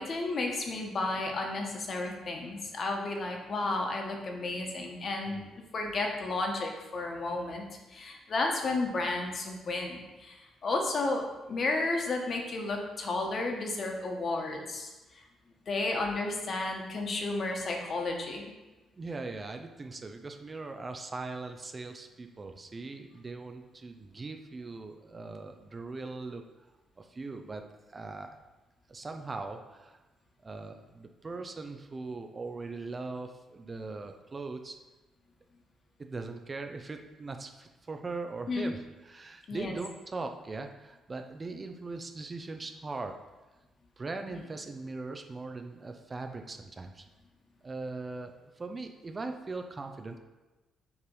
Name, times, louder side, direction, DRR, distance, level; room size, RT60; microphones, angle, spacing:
voice 1, 0.0-7.6 7.9-15.2 15.7-18.5 38.5-38.7 39.5-39.8, left 2 dB, 50° left, 2 dB, 1.2 m, -32 dB
voice 2, 19.0-26.4 27.0-27.6 27.9-28.3 28.9-30.0 30.4-34.8 36.0-43.1 44.0-47.0 47.6-50.2, right 3 dB, 30° right, 5 dB, 0.6 m, -40 dB
7.1 x 3.3 x 5.4 m, 1.1 s
cardioid pair, 90°, 0 cm